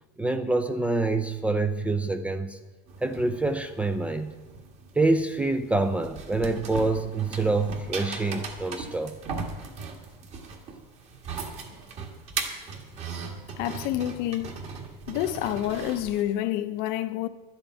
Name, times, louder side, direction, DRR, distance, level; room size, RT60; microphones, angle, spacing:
voice 1, 0.2-2.6 3.0-4.3 5.0-9.1, right 2 dB, 5° right, 0.4 m, -26 dB
sound 1, 2.9-16.2, right 4 dB, 35° right, 1.6 m, -38 dB
voice 2, 13.6-14.6 15.1-17.3, left 13 dB, 55° left, 0.7 m, -28 dB
11.5 x 7.1 x 9.0 m
cardioid pair, 170°, 20 cm